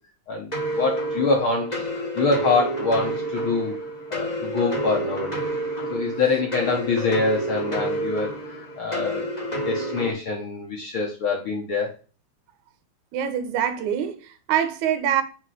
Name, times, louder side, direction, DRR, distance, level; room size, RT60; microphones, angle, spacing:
voice 1, 0.3-1.9 2.2-3.8 4.1-5.4 5.9-8.3 8.8-9.3 9.7-11.9, left 4 dB, 65° left, 1.4 m, -25 dB
sound 1, 0.5-10.1, right 1 dB, 80° left, 0.3 m, -29 dB
voice 2, 13.1-15.2, right 9 dB, 80° right, 2.2 m, -24 dB
5.2 x 4.2 x 4.7 m
omnidirectional pair, 3.5 m